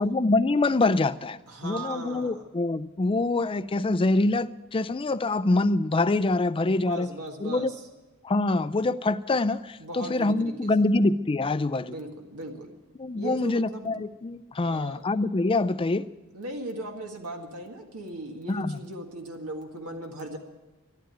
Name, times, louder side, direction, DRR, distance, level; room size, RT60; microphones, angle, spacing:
voice 1, 0.0-1.4 1.6-7.1 7.4-7.7 8.2-12.0 13.0-16.1 18.5-18.8, left 2 dB, 25° left, 14 dB, 0.4 m, -25 dB
voice 2, 1.5-2.4 6.7-7.8 9.8-10.9 11.8-12.7 13.2-14.0 14.6-15.0 16.3-20.4, right 1 dB, 90° right, 3 dB, 1.8 m, -38 dB
13.0 x 11.5 x 9.0 m, 1.1 s
head